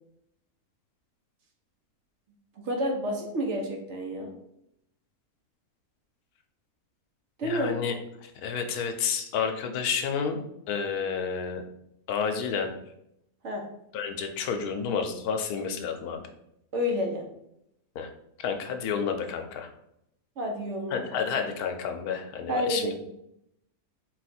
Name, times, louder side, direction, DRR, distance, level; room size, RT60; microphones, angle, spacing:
voice 1, 2.6-4.3 7.4-7.7 13.4-13.6 16.7-17.2 20.4-21.0 22.5-22.9, equal, 60° right, 1 dB, 1.0 m, -29 dB
voice 2, 7.4-7.9 8.2-10.4 10.7-11.6 12.1-12.7 13.9-16.2 18.0-18.1 18.4-19.7 20.9-22.9, left 6 dB, 85° left, 6 dB, 1.1 m, -30 dB
4.3 x 2.4 x 4.2 m, 0.79 s
omnidirectional pair, 1.6 m